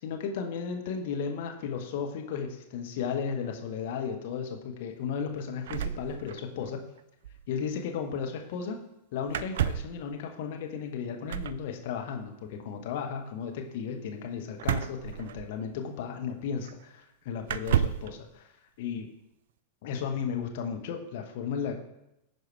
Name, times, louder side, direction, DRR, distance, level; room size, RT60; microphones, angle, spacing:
voice 1, 0.0-6.9 7.5-8.8 9.1-18.5 18.8-19.1 19.8-21.8, left 6 dB, 50° left, 4 dB, 1.1 m, -34 dB
sound 1, 5.7-6.7 7.0-7.1 7.2-7.5 9.3-10.0 11.3-11.6 14.6-15.8 16.6-16.7 17.4-18.1, right 9 dB, 60° right, 0.3 m, -31 dB
9.7 x 4.8 x 4.7 m, 0.86 s
figure-of-eight pair, 90°, 0 cm